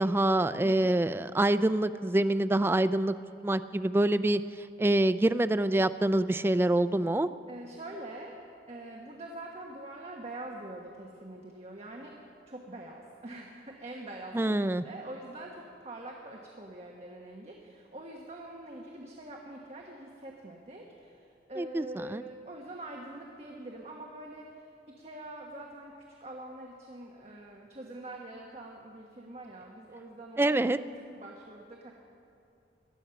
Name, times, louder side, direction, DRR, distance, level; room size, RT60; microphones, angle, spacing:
voice 1, 0.0-3.1 3.4-4.4 4.8-7.3 14.3-14.8 21.6-22.2 30.4-30.8, right 1 dB, 15° right, 12 dB, 0.3 m, -26 dB
voice 2, 7.5-12.1 12.5-24.7 25.0-25.9 26.2-30.5 31.1-31.9, right 1 dB, 35° right, 0 dB, 1.3 m, -44 dB
19.0 x 12.5 x 5.8 m, 2.5 s
head